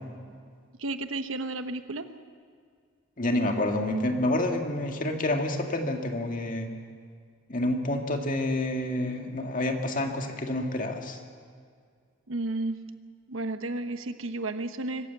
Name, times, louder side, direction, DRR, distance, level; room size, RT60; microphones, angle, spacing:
voice 1, 0.8-2.1 12.3-12.8 13.3-15.1, right 2 dB, 70° right, 9 dB, 1.1 m, -32 dB
voice 2, 3.2-6.7 7.5-11.2, left 1 dB, 40° left, 3 dB, 2.0 m, -28 dB
25.0 x 15.0 x 8.1 m, 2.1 s
head